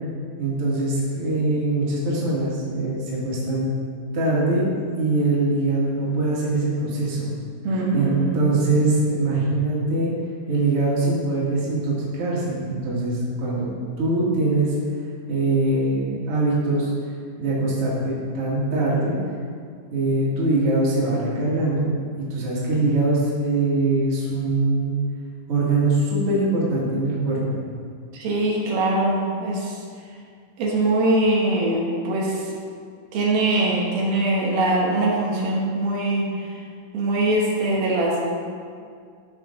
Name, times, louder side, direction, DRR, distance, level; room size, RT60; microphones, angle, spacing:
voice 1, 0.4-3.7 4.1-4.6 5.0-7.3 7.9-8.1 8.3-10.1 10.5-14.7 15.3-16.9 17.4-19.1 19.9-21.9 22.3-24.9 25.5-27.4, right 2 dB, 45° right, -6 dB, 2.6 m, -22 dB
voice 2, 7.6-8.5 28.1-29.8 30.6-32.5 33.1-36.5 36.9-38.2, right 2 dB, 85° right, -3 dB, 3.2 m, -22 dB
12.5 x 6.0 x 3.8 m, 2.1 s
omnidirectional pair, 4.1 m